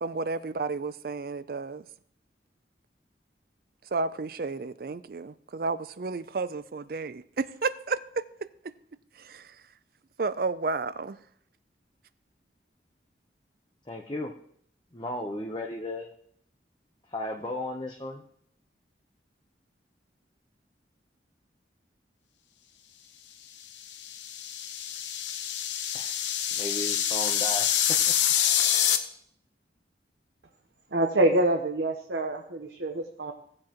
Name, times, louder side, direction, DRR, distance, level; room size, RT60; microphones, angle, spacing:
voice 1, 0.0-1.8 3.9-8.2 9.2-9.5 10.2-11.2, right 4 dB, 55° right, 0.4 m, -32 dB
voice 2, 13.9-14.3 14.9-16.1 17.1-18.2 25.9-26.2 26.5-27.7, left 1 dB, 25° left, 0.8 m, -35 dB
sound 1, 23.8-29.0, left 9 dB, 90° left, 0.9 m, -26 dB
voice 3, 30.9-33.3, right 1 dB, 80° right, 1.0 m, -26 dB
17.0 x 7.6 x 3.0 m
head